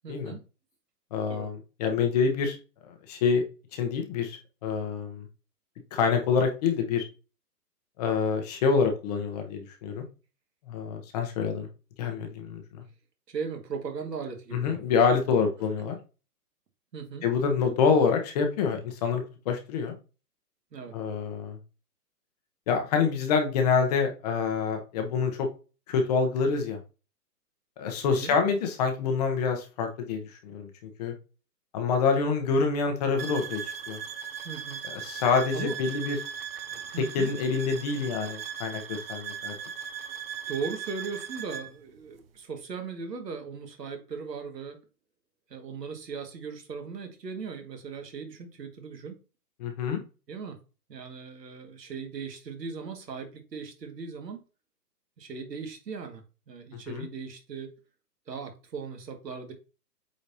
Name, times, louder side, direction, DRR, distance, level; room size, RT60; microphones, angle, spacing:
voice 1, 0.0-0.4 1.3-1.5 13.3-14.8 16.9-17.3 20.7-21.0 28.0-28.4 34.4-34.8 35.1-35.2 35.5-35.8 36.8-37.3 40.5-44.8 45.5-49.2 50.3-50.6 50.9-54.4 55.2-57.7 58.3-59.5, right 5 dB, 85° right, 4 dB, 2.0 m, -38 dB
voice 2, 1.1-2.6 2.9-3.4 3.7-5.2 5.9-7.0 8.0-10.0 10.7-11.7 12.0-12.6 14.5-16.0 17.2-19.9 20.9-21.6 22.7-25.5 25.9-26.8 27.8-31.1 31.7-34.0 34.9-36.2 37.0-39.5 49.6-50.0 56.9-57.0, left 5 dB, 25° left, 5 dB, 0.8 m, -26 dB
sound 1, 33.2-41.7, right 7 dB, 40° right, 0.6 m, -38 dB
8.3 x 4.1 x 2.8 m, 0.33 s
hypercardioid pair, 150°, 48 cm